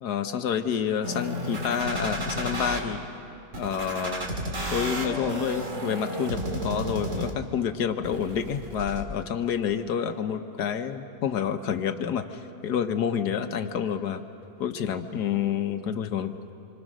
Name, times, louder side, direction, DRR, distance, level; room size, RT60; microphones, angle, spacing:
voice 1, 0.0-3.0 3.6-4.3 4.7-14.2 14.6-16.5, left 8 dB, 75° left, 8 dB, 1.5 m, -28 dB
sound 1, 1.0-2.8 3.5-7.6 8.0-9.0, equal, 50° right, 2.4 m, -32 dB
27.0 x 24.5 x 6.3 m, 2.7 s
omnidirectional pair, 1.8 m